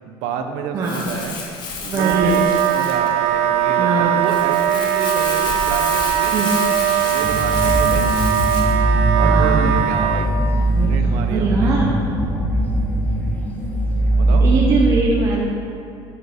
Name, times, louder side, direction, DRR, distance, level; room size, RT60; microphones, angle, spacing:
voice 1, 0.0-1.4 1.8-6.3 7.0-8.1 9.2-10.3 10.8-11.7 14.2-14.4, right 6 dB, 90° right, 5 dB, 0.9 m, -29 dB
voice 2, 0.7-1.1 1.8-2.5 3.8-4.2 6.3-6.6 9.1-9.6 10.7-11.9 14.4-15.5, right 2 dB, 30° right, -3 dB, 0.9 m, -21 dB
Crumpling crinkling, 0.8-8.8, left 4 dB, 40° left, 1.2 m, -30 dB
Wind instrument woodwind instrument, 1.9-10.3, right 11 dB, 70° right, 0.5 m, -20 dB
sound 1, 7.2-14.9, right 2 dB, 15° left, 1.3 m, -19 dB
9.3 x 6.7 x 5.1 m, 2.5 s
cardioid pair, 165°, 11 cm